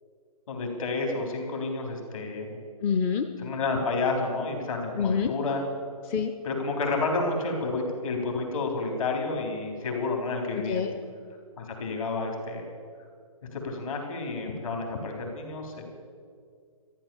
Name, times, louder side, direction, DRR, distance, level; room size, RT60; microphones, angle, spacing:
voice 1, 0.5-2.6 3.4-5.6 6.4-10.8 11.6-12.7 13.5-15.9, left 3 dB, 60° left, 2 dB, 4.0 m, -30 dB
voice 2, 2.8-3.3 5.0-5.3 6.1-6.3 10.5-10.9, left 6 dB, 15° left, 6 dB, 0.4 m, -26 dB
13.5 x 12.0 x 7.2 m, 2.1 s
figure-of-eight pair, 140°, 20 cm